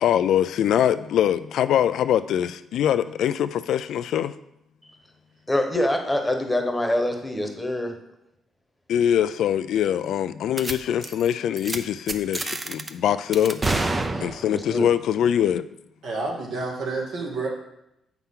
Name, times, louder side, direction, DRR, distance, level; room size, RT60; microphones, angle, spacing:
voice 1, 0.0-4.3 8.9-13.7 14.2-15.6, left 10 dB, 75° left, 13 dB, 0.3 m, -23 dB
voice 2, 5.5-7.9 14.5-14.9, left 1 dB, 10° left, 4 dB, 1.1 m, -25 dB
sound 1, 10.6-10.7 11.0-11.3 11.6-11.8 12.1-12.9 13.3-14.7, right 2 dB, 25° right, 0.6 m, -27 dB
voice 3, 16.0-17.5, right 3 dB, 75° right, -2 dB, 2.3 m, -29 dB
8.0 x 5.8 x 3.7 m, 0.84 s
cardioid pair, 90°, 0 cm